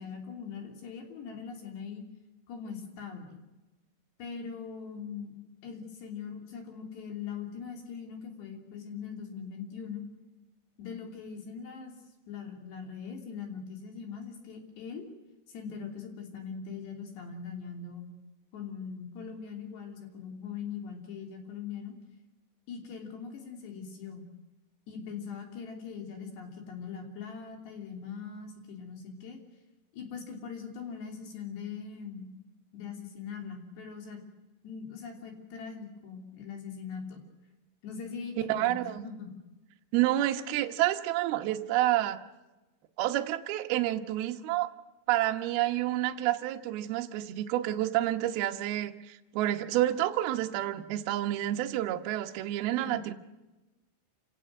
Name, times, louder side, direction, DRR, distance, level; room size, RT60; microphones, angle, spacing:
voice 1, 0.0-2.0 2.5-3.4 4.2-5.3 5.6-10.0 10.8-11.9 12.3-15.1 15.5-18.0 18.5-21.9 22.7-24.2 24.9-29.4 29.9-32.3 32.7-34.2 34.6-37.2 37.8-39.3 52.8-53.0, left 6 dB, 60° left, 4 dB, 5.2 m, -41 dB
voice 2, 38.5-39.1 39.9-42.2 43.0-44.7 45.1-53.1, right 14 dB, 70° right, 5 dB, 2.5 m, -29 dB
27.0 x 17.5 x 7.7 m, 1.1 s
omnidirectional pair, 5.7 m